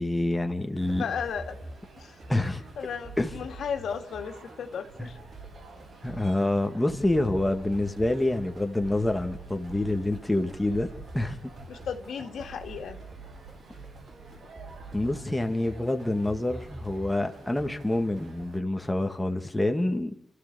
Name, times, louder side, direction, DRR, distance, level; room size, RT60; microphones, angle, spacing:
voice 1, 0.0-1.1 2.3-2.6 3.2-3.3 5.0-5.1 6.0-10.9 11.1-11.4 14.9-20.1, left 1 dB, 10° left, 2.1 m, -27 dB
sound 1, 0.8-18.4, right 2 dB, 45° right, 5.4 m, -46 dB
sound 2, 0.8-18.6, right 3 dB, 80° right, 7.2 m, -50 dB
voice 2, 1.0-1.6 2.0-2.2 2.8-5.2 11.7-13.0, left 7 dB, 85° left, 2.2 m, -34 dB
29.0 x 14.0 x 6.9 m
cardioid pair, 105°, 0 cm